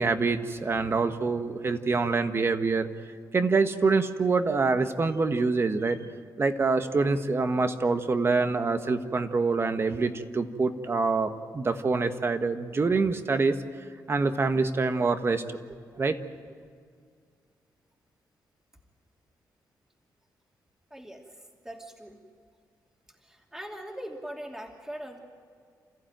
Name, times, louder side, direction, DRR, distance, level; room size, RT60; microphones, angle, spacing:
voice 1, 0.0-2.9 3.3-6.0 6.4-13.6 14.1-15.4 16.0-16.2, right 4 dB, 35° right, 8 dB, 1.5 m, -25 dB
voice 2, 20.9-21.2 21.6-22.2 23.2-25.2, right 1 dB, 5° right, 1 dB, 2.8 m, -41 dB
28.5 x 15.0 x 9.1 m, 2.1 s
cardioid pair, 105°, 7 cm